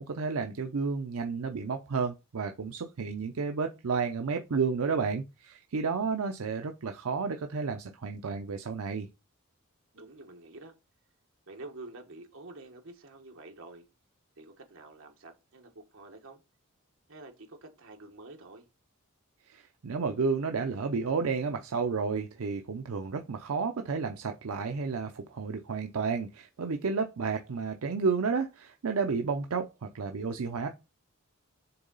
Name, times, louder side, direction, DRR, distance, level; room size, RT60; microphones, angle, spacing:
voice 1, 0.0-9.1 19.5-19.6 19.8-30.7, right 5 dB, 80° right, 0.6 m, -31 dB
voice 2, 9.9-10.7 11.5-13.9 14.4-16.4 17.1-18.6, right 2 dB, 65° right, 1.4 m, -48 dB
6.8 x 3.7 x 3.9 m
head